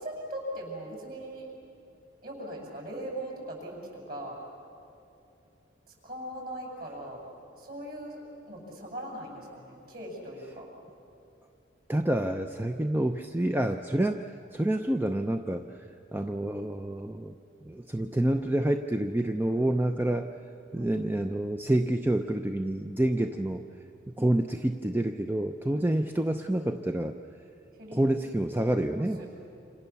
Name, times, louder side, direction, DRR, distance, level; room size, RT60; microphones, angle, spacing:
voice 1, 0.0-1.5 2.2-4.4 5.9-7.2 7.6-8.2 8.5-10.7 19.4-20.1 20.7-21.2 23.2-23.3 25.7-25.9 27.8-28.2 28.9-29.3, right 1 dB, 50° right, -1 dB, 7.1 m, -40 dB
voice 2, 11.9-15.8 16.1-17.3 17.6-20.3 20.7-23.6 24.2-27.2 27.9-29.2, right 1 dB, 10° right, 5 dB, 0.5 m, -28 dB
27.0 x 27.0 x 7.0 m, 2.7 s
head